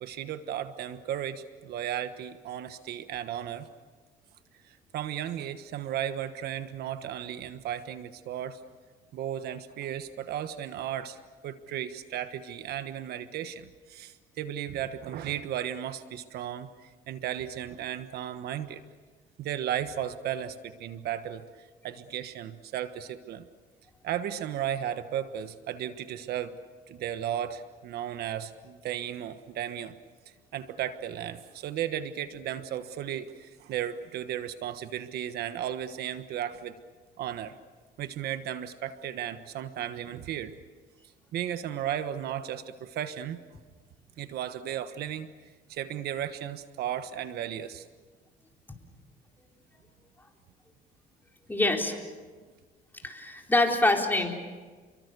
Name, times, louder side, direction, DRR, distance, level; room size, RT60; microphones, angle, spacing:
voice 1, 0.0-3.7 4.6-8.6 9.1-11.2 11.4-18.8 19.4-23.4 24.0-26.5 26.9-29.9 30.5-36.7 37.2-37.5 38.0-40.5 41.3-43.4 44.2-45.3 45.7-47.9, right 10 dB, 70° right, 10 dB, 1.3 m, -35 dB
voice 2, 51.5-52.0 53.0-54.3, left 2 dB, 10° left, 1 dB, 4.1 m, -25 dB
29.5 x 23.0 x 6.8 m, 1.4 s
cardioid pair, 110°, 17 cm